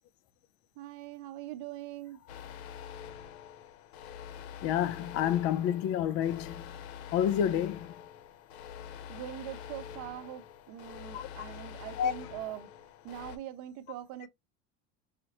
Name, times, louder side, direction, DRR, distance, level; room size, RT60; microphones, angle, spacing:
voice 1, 0.8-2.2 9.1-12.7 13.0-14.3, right 13 dB, 60° right, 0.8 m, -42 dB
sound 1, 2.3-13.4, left 8 dB, 80° left, 0.9 m, -46 dB
voice 2, 4.6-6.6 7.1-7.9 11.1-11.3 12.0-12.1, left 10 dB, 45° left, 0.5 m, -29 dB
5.0 x 2.6 x 2.9 m
supercardioid pair, 150°, 32 cm